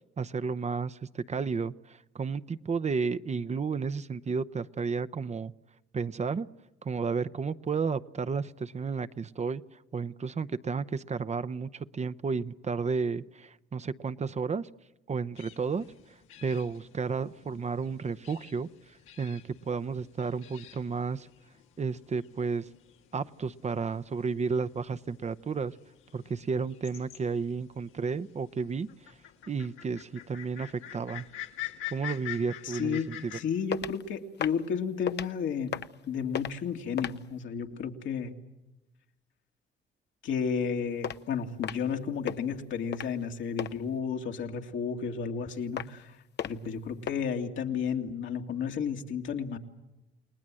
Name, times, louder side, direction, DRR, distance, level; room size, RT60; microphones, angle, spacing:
voice 1, 0.2-5.5 5.9-6.5 6.8-9.6 9.9-14.7 15.1-18.7 19.2-21.3 21.8-22.7 23.1-25.7 26.1-29.1 29.5-31.3 31.9-33.4, right 5 dB, 35° right, 13 dB, 0.8 m, -32 dB
sound 1, 15.4-33.4, left 12 dB, 90° left, 1.9 m, -47 dB
voice 2, 32.6-35.7 36.1-38.3 40.2-46.2 46.4-49.6, left 6 dB, 75° left, 3 dB, 2.3 m, -32 dB
sound 2, 33.7-34.0 34.4-34.7 35.1-35.3 35.7-36.0 36.3-36.6 37.0-37.3 41.0-41.2 41.6-41.9 42.3-42.4 42.9-43.2 43.6-43.7 45.8-46.0 46.4-46.7 47.1-47.2, left 9 dB, 60° left, 0.9 m, -34 dB
30.0 x 19.5 x 7.7 m, 1.0 s
cardioid pair, 90°, 20 cm